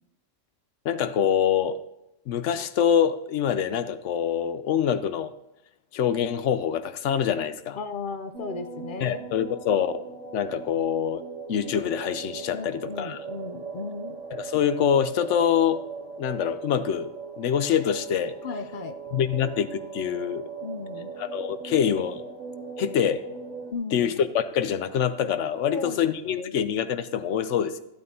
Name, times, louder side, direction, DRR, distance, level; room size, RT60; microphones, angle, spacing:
voice 1, 0.8-1.8 2.3-5.3 5.9-7.8 9.0-9.9 10.3-11.2 11.5-13.2 14.3-15.8 16.2-17.1 17.4-18.3 19.1-20.4 21.2-22.2 22.8-23.2 23.9-27.8, left 8 dB, 75° left, 12 dB, 1.0 m, -25 dB
voice 2, 7.8-9.3 12.5-14.2 18.4-19.0 20.6-21.1 23.7-24.1 25.7-26.6, left 4 dB, 55° left, 9 dB, 0.6 m, -35 dB
sound 1, 8.3-23.7, right 4 dB, 80° right, 1.7 m, -39 dB
14.0 x 8.6 x 2.7 m, 0.90 s
omnidirectional pair, 1.3 m